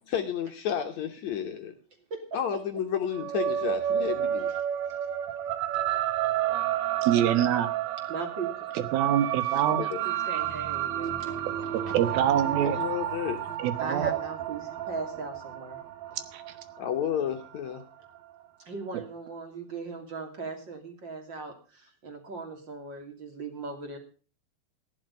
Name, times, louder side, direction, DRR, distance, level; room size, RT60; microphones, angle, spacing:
voice 1, 0.1-1.7 2.3-4.5 9.8-10.0 12.6-13.4 16.8-17.8, left 8 dB, 65° left, 5 dB, 2.1 m, -31 dB
sound 1, 3.1-17.8, right 11 dB, 70° right, 1.8 m, -31 dB
voice 2, 7.0-7.7 8.7-9.8 11.9-12.8 13.6-14.1 16.3-16.4, right 10 dB, 85° right, 11 dB, 3.1 m, -25 dB
voice 3, 8.1-8.7 9.5-11.3 11.6-12.0 13.8-15.8 18.6-24.0, right 4 dB, 35° right, 4 dB, 3.1 m, -38 dB
14.5 x 11.0 x 5.3 m, 0.37 s
omnidirectional pair, 4.2 m